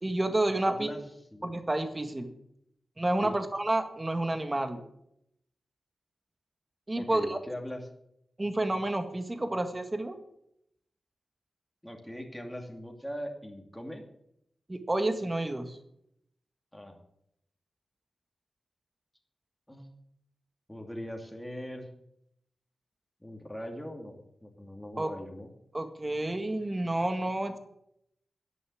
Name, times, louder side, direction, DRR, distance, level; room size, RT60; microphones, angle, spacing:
voice 1, 0.0-0.9 1.4-2.3 3.0-4.8 6.9-7.4 8.4-10.2 14.7-15.8 25.0-25.1 25.7-27.6, right 1 dB, 20° right, 7 dB, 1.7 m, -30 dB
voice 2, 0.6-1.0 1.3-1.5 3.2-3.3 7.0-7.8 11.8-14.0 16.7-16.9 19.7-19.9 20.7-21.9 23.2-25.5, equal, 5° left, 2 dB, 2.7 m, -40 dB
11.0 x 9.3 x 7.8 m, 0.75 s
wide cardioid pair, 105°, 0 cm